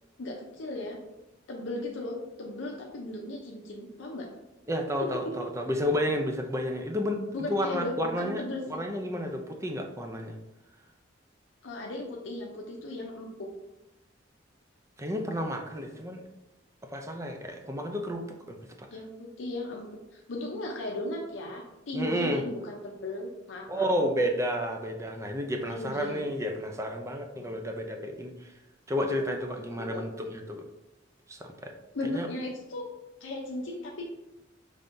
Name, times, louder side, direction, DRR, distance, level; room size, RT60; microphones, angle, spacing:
voice 1, 0.2-1.0 1.5-4.3 5.0-5.5 7.3-8.8 11.6-13.5 18.9-19.9 20.1-23.9 25.7-26.3 27.3-27.6 29.8-30.1 31.9-32.8 33.2-34.1, left 2 dB, 80° left, -1 dB, 0.6 m, -36 dB
voice 2, 4.7-10.3 15.0-16.2 16.9-18.9 21.9-22.4 23.7-28.5 28.9-30.6 31.3-31.7 32.0-32.3, equal, 15° right, 3 dB, 0.4 m, -31 dB
5.3 x 3.3 x 2.6 m, 0.97 s
head